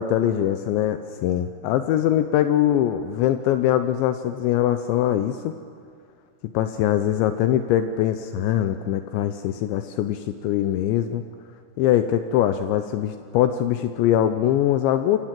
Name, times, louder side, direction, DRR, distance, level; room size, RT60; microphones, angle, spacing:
voice 1, 0.0-5.5 6.5-11.2 11.8-15.2, left 11 dB, 80° left, 9 dB, 3.0 m, -22 dB
27.5 x 26.0 x 7.6 m, 2.3 s
omnidirectional pair, 5.3 m